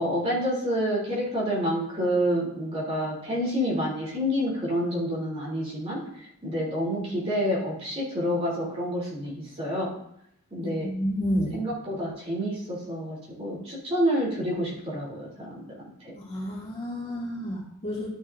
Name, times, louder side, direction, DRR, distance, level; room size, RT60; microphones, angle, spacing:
voice 1, 0.0-6.0 6.4-9.9 10.5-10.9 11.5-15.6 16.0-16.1, equal, 30° right, -6 dB, 3.4 m, -28 dB
voice 2, 10.8-11.6 16.2-18.1, equal, 30° left, -6 dB, 2.6 m, -30 dB
13.0 x 7.1 x 2.7 m, 0.73 s
head